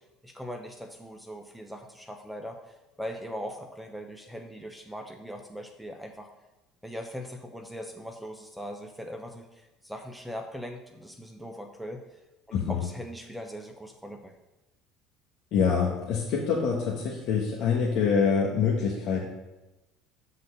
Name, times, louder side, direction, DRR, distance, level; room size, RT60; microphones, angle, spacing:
voice 1, 0.2-6.3 6.8-12.2 12.5-14.4, equal, ahead, 3 dB, 0.8 m, -40 dB
voice 2, 12.5-12.8 15.5-19.3, left 6 dB, 60° left, -3 dB, 1.3 m, -25 dB
7.5 x 4.0 x 6.7 m, 1.0 s
hypercardioid pair, 75°, 0 cm